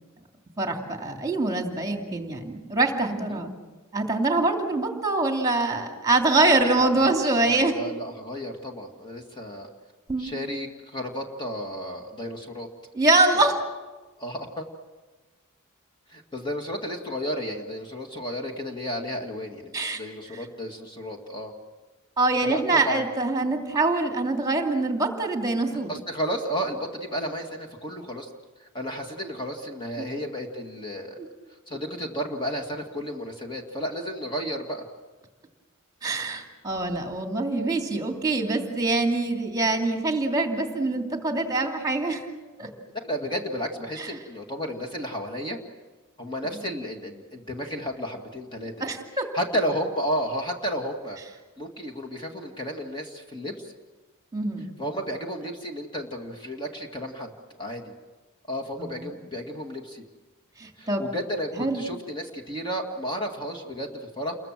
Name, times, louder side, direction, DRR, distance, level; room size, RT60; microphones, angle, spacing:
voice 1, 0.6-3.5 3.9-7.7 10.1-10.3 12.9-13.5 19.7-20.0 22.2-25.9 31.2-31.3 36.0-42.2 42.6-42.7 44.0-44.1 48.8-49.2 54.3-54.7 58.8-59.2 60.6-61.0 61.6-61.8, right 2 dB, 15° right, 3 dB, 2.7 m, -24 dB
voice 2, 6.7-9.7 10.2-12.7 13.3-13.6 14.2-14.7 16.1-21.5 22.4-23.1 25.9-28.3 28.6-31.2 31.7-34.9 42.9-45.6 46.2-49.0 49.3-51.2 51.6-53.7 54.8-57.9 58.5-60.0 60.8-64.4, equal, 20° left, 3 dB, 2.2 m, -32 dB
29.0 x 22.5 x 7.6 m, 1.3 s
head